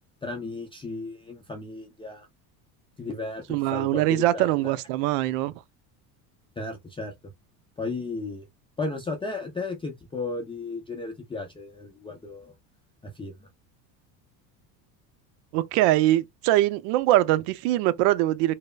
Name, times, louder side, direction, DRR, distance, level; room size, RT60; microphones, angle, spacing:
voice 1, 0.2-2.3 3.0-4.7 6.6-7.1 7.8-8.5 8.8-12.5 13.0-13.4, left 3 dB, 10° left, 0.4 m, -34 dB
voice 2, 3.5-5.5 15.5-18.6, right 15 dB, 75° right, 0.5 m, -22 dB
3.1 x 2.0 x 2.2 m
supercardioid pair, 105°, 45 cm